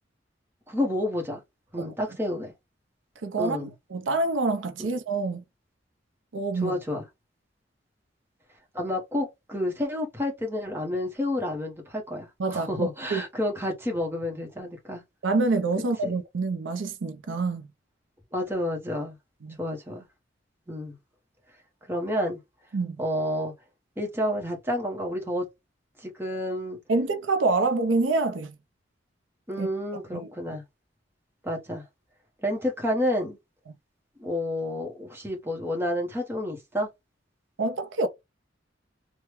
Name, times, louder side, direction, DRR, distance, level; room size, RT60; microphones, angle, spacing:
voice 1, 0.7-1.4 1.7-2.5 3.4-3.7 4.8-4.9 6.6-7.0 8.7-15.0 16.0-16.1 18.3-19.2 19.6-20.1 20.7-20.9 21.9-22.4 23.0-23.5 24.0-25.5 26.0-26.8 29.5-30.6 31.4-31.8 32.4-33.4 34.2-36.9, left 1 dB, 10° right, 0.9 m, -30 dB
voice 2, 3.2-5.4 6.3-6.7 12.4-13.2 15.2-17.7 19.4-19.6 22.7-23.0 26.9-28.5 29.6-29.7 30.1-30.3 37.6-38.1, right 3 dB, 90° right, 0.6 m, -26 dB
3.3 x 2.1 x 3.0 m
head